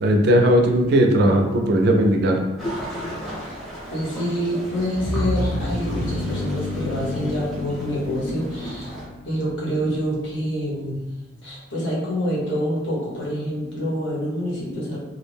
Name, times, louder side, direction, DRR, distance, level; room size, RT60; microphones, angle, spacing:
voice 1, 0.0-2.4, equal, 60° right, 3 dB, 0.4 m, -17 dB
sound 1, 2.6-9.0, equal, ahead, 0.7 m, -34 dB
voice 2, 3.9-9.0 9.2-11.1 11.4-15.0, equal, 75° left, -5 dB, 0.9 m, -26 dB
sound 2, 4.9-9.8, left 1 dB, 35° left, 0.5 m, -30 dB
2.3 x 2.1 x 3.3 m, 1.1 s
head